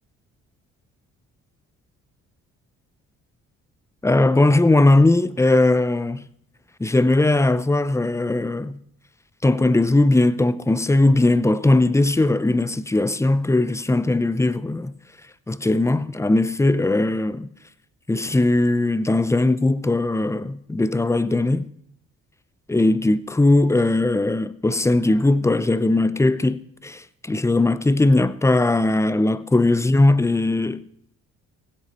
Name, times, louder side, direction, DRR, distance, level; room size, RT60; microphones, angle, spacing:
voice 1, 4.0-6.2 6.8-8.8 9.4-14.9 15.5-17.5 18.1-21.6 22.7-30.8, left 2 dB, 10° left, 0.7 m, -19 dB
16.0 x 11.5 x 4.3 m
cardioid pair, 90°, 30 cm